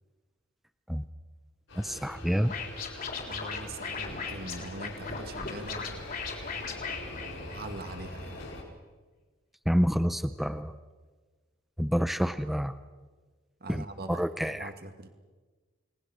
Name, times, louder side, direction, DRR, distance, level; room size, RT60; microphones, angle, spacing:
sound 1, 1.7-8.6, left 1 dB, 70° left, 7.2 m, -43 dB
voice 1, 1.8-2.5 9.7-10.7 11.8-12.7 13.7-14.7, equal, ahead, 11 dB, 0.6 m, -28 dB
Scratching (performance technique), 2.5-7.9, left 5 dB, 45° left, 4.0 m, -38 dB
voice 2, 3.2-6.1 7.1-8.4 13.6-15.1, right 2 dB, 50° right, 7 dB, 2.1 m, -42 dB
30.0 x 19.0 x 6.3 m, 1.3 s
head